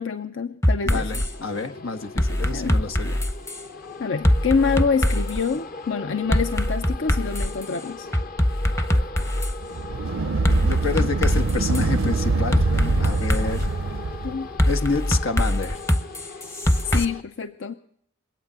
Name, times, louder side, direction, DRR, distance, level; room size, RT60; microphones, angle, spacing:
voice 1, 0.0-1.2 2.5-2.7 4.0-8.1 13.2-13.3 14.2-14.5 16.9-17.7, left 5 dB, 65° left, 9 dB, 0.6 m, -26 dB
sound 1, 0.6-1.3 2.2-3.6 4.2-5.4 6.3-7.6 8.1-9.5 10.4-11.8 12.5-13.7 14.6-17.0, equal, 15° left, 0.7 m, -22 dB
voice 2, 0.8-3.3 10.6-13.7 14.7-15.8, left 4 dB, 90° left, 7 dB, 1.4 m, -28 dB
sound 2, 0.9-17.2, left 3 dB, 45° left, 0.9 m, -39 dB
sound 3, 9.6-14.5, right 3 dB, 75° right, 0.6 m, -24 dB
23.0 x 8.9 x 6.8 m, 0.66 s
head